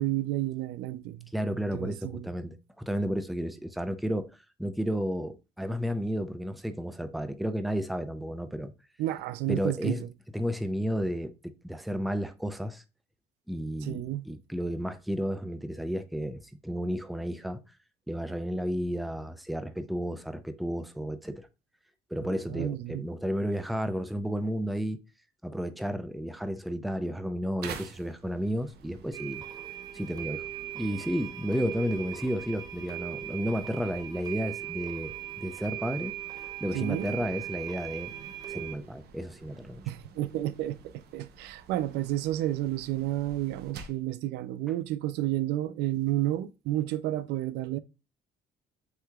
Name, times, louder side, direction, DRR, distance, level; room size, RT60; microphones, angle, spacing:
voice 1, 0.0-1.3 1.7-2.3 9.0-10.1 13.8-14.3 22.2-23.1 36.7-37.1 39.9-40.8 41.1-47.8, right 14 dB, 85° right, 0.4 m, -31 dB
voice 2, 1.3-4.3 4.6-8.7 9.5-10.0 10.3-12.8 13.5-17.6 18.1-21.5 22.1-25.0 25.4-29.4 29.9-30.5 30.7-36.1 36.6-38.1 38.5-39.8, equal, ahead, 0.5 m, -32 dB
sound 1, 27.6-44.1, right 5 dB, 70° right, 0.8 m, -50 dB
sound 2, 29.1-38.8, right 11 dB, 20° right, 0.8 m, -39 dB
8.0 x 2.9 x 2.3 m
cardioid pair, 110°, 17 cm